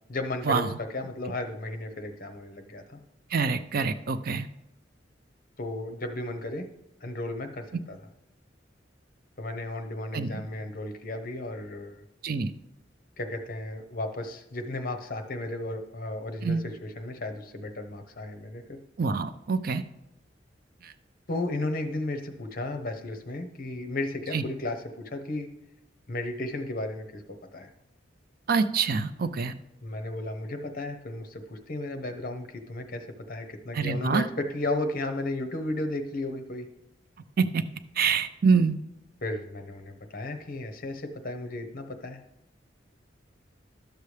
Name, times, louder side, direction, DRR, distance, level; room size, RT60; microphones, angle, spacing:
voice 1, 0.1-2.8 5.6-6.7 7.0-8.0 9.4-12.0 13.2-18.8 21.3-25.5 26.1-27.2 27.5-27.7 29.8-36.7 39.2-42.2, left 2 dB, 50° left, 6 dB, 0.9 m, -34 dB
voice 2, 3.3-4.5 7.7-7.8 10.1-10.4 12.2-12.5 16.4-16.6 19.0-19.8 20.8-20.9 24.3-24.4 28.5-29.5 33.7-34.3 37.4-37.6 38.0-38.8, right 5 dB, 55° right, 11 dB, 0.4 m, -25 dB
11.5 x 6.7 x 3.3 m, 0.83 s
head